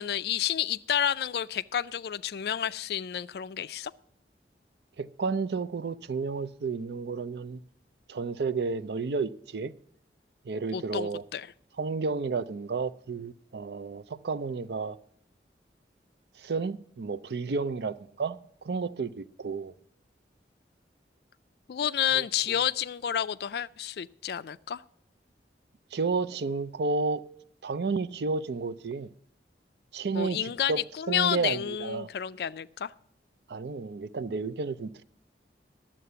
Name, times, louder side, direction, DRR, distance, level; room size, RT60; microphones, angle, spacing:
voice 1, 0.0-3.9 10.7-11.5 21.7-24.8 30.1-32.9, left 9 dB, 60° left, 0.3 m, -30 dB
voice 2, 5.0-7.6 8.1-9.7 10.5-11.2 11.8-15.0 16.4-18.4 18.6-19.7 22.1-22.2 25.9-27.2 27.6-29.1 29.9-30.8 31.1-32.1 33.5-35.0, right 4 dB, 70° right, 0.5 m, -31 dB
11.0 x 7.4 x 6.7 m
head